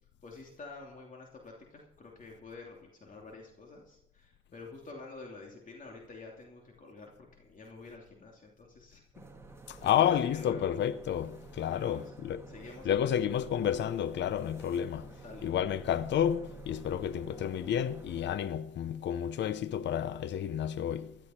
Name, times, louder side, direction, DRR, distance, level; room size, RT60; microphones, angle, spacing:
voice 1, 0.2-9.0 9.8-10.8 11.7-12.1 12.5-13.2 15.2-15.5, left 3 dB, 40° left, 2.9 m, -48 dB
sound 1, 9.1-18.4, right 3 dB, 15° right, 2.0 m, -50 dB
voice 2, 9.7-12.4 12.8-15.1 15.4-21.2, left 9 dB, 65° left, 0.7 m, -30 dB
16.0 x 12.5 x 4.4 m
cardioid pair, 90°, 20 cm